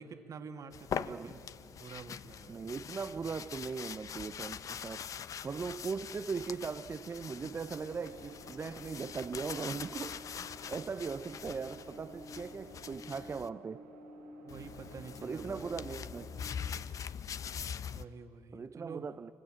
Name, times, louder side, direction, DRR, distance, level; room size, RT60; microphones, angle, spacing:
voice 1, 0.0-2.7 14.4-15.8 17.9-19.1, right 5 dB, 50° right, 2.1 m, -48 dB
sound 1, 0.7-13.5 14.5-18.1, left 7 dB, 50° left, 0.8 m, -43 dB
voice 2, 2.5-5.1 5.4-13.8 15.2-16.3 18.5-19.3, right 5 dB, 30° right, 0.6 m, -39 dB
sound 2, 7.5-16.4, right 1 dB, 90° right, 3.8 m, -52 dB
27.0 x 25.5 x 7.6 m
hypercardioid pair, 55°, 7 cm